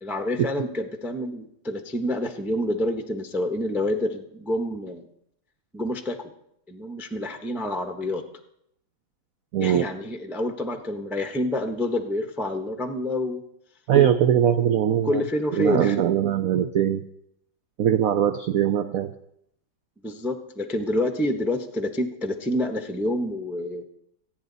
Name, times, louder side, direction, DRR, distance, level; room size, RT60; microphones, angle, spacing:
voice 1, 0.0-5.0 5.7-6.3 6.7-8.2 9.6-13.4 15.0-16.0 20.0-23.8, left 1 dB, ahead, 6 dB, 0.5 m, -28 dB
voice 2, 9.5-9.9 13.9-15.2 15.5-17.0 17.8-19.1, right 9 dB, 85° right, 10 dB, 0.7 m, -21 dB
26.0 x 9.3 x 4.0 m, 0.74 s
omnidirectional pair, 2.2 m